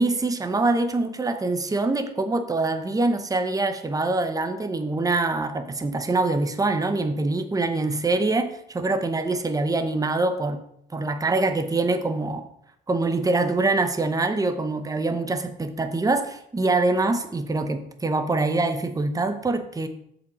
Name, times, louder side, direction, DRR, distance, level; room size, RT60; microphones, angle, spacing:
voice 1, 0.0-10.6 10.9-12.4 12.9-19.9, right 2 dB, 15° right, 8 dB, 0.8 m, -24 dB
6.8 x 5.2 x 4.8 m, 0.72 s
cardioid pair, 90°, 20 cm